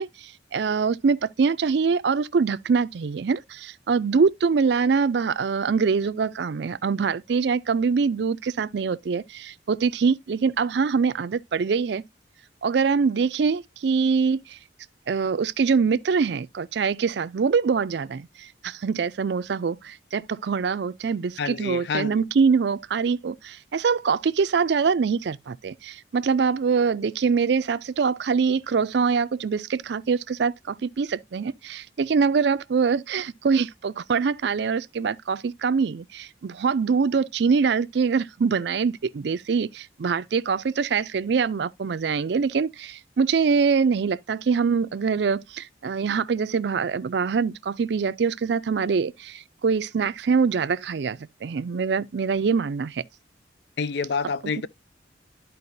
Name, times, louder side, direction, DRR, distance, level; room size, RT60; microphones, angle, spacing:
voice 1, 0.0-12.0 12.6-14.6 15.1-53.0 54.4-54.6, right 5 dB, 60° right, 0.4 m, -24 dB
voice 2, 21.4-22.2 53.8-54.7, left 5 dB, 60° left, 0.4 m, -28 dB
12.5 x 4.6 x 2.6 m
head